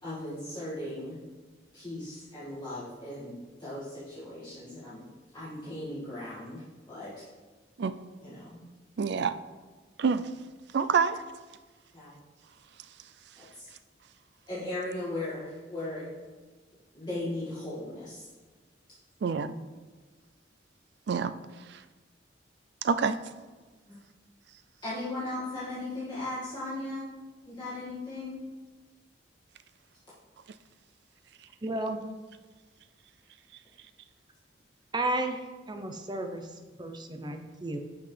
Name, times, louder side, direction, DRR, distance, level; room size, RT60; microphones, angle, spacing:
voice 1, 0.0-1.2 1.7-5.0 5.3-6.6 6.9-7.2 8.2-8.6 11.9-12.2 13.4-13.7 14.5-16.1 16.9-18.3 19.3-19.4 23.9-24.0 24.8-27.1 27.5-28.4, left 1 dB, 25° left, -11 dB, 2.0 m, -37 dB
voice 2, 7.8-8.2 9.0-9.3 10.0-10.3 10.7-11.2 19.2-19.5 21.1-21.3 21.7-21.8 22.8-23.2, right 5 dB, 60° right, 12 dB, 0.4 m, -27 dB
voice 3, 31.6-32.0 34.9-36.5 36.8-37.8, right 1 dB, 25° right, 6 dB, 0.7 m, -33 dB
11.0 x 5.8 x 3.3 m, 1.4 s
head